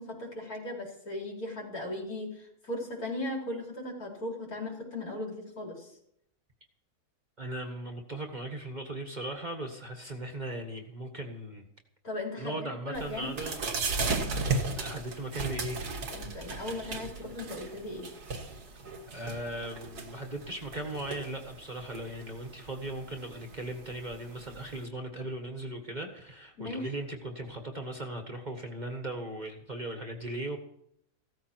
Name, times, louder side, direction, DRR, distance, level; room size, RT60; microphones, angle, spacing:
voice 1, 0.0-5.9 12.0-13.3 16.1-18.1 26.6-26.9, left 1 dB, 65° left, -2 dB, 4.7 m, -37 dB
voice 2, 7.4-11.7 12.4-13.6 14.7-15.8 19.1-30.6, right 1 dB, 30° right, 4 dB, 1.6 m, -38 dB
sound 1, 12.9-24.8, right 3 dB, 90° right, 2.3 m, -36 dB
16.0 x 13.5 x 4.6 m, 0.73 s
omnidirectional pair, 1.6 m